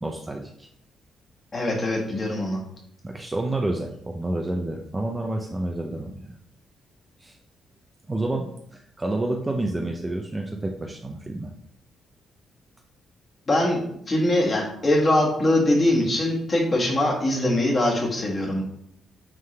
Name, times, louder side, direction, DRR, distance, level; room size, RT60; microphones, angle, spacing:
voice 1, 0.0-0.7 3.0-6.3 7.2-7.4 8.1-11.5, right 2 dB, 15° right, 1 dB, 0.5 m, -29 dB
voice 2, 1.5-2.6 13.5-13.8 14.1-18.6, left 1 dB, 25° left, -2 dB, 1.7 m, -22 dB
9.2 x 3.7 x 3.3 m, 0.70 s
cardioid pair, 175°, 0 cm